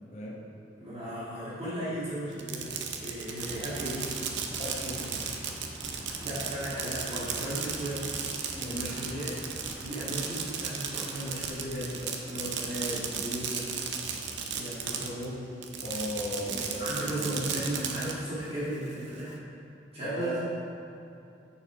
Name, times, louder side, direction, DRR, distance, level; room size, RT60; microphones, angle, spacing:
voice 1, 0.8-4.1 6.2-8.1 8.6-13.7 14.5-15.5 16.4-19.4 19.9-20.4, right 1 dB, 35° right, -11 dB, 1.9 m, -36 dB
Fireworks, 2.3-15.3 15.6-18.1, right 6 dB, 75° right, 0.7 m, -35 dB
sound 1, 3.2-11.5, equal, 10° right, 1.1 m, -47 dB
voice 2, 4.6-5.2 5.6-5.9 8.5-8.8 15.8-17.5 20.0-20.4, equal, 40° left, -3 dB, 1.2 m, -37 dB
6.7 x 6.5 x 4.8 m, 2.7 s
head